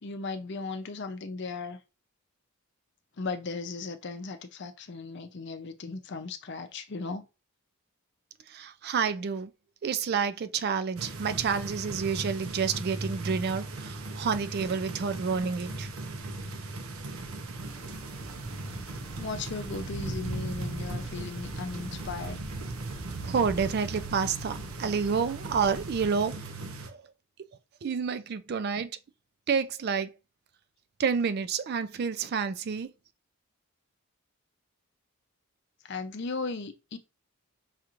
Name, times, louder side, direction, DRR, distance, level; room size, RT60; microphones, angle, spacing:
voice 1, 0.0-1.8 3.2-7.2 18.8-22.4 35.8-37.0, left 4 dB, 50° left, 0.5 m, -37 dB
voice 2, 8.5-9.5 9.8-15.9 23.2-26.4 26.9-27.0 27.8-28.9 29.5-30.1 31.0-32.9, right 6 dB, 45° right, 0.3 m, -29 dB
sound 1, 11.0-26.9, right 2 dB, 70° right, 0.7 m, -38 dB
sound 2, 17.6-26.1, equal, 20° left, 1.4 m, -47 dB
5.6 x 3.0 x 2.5 m
head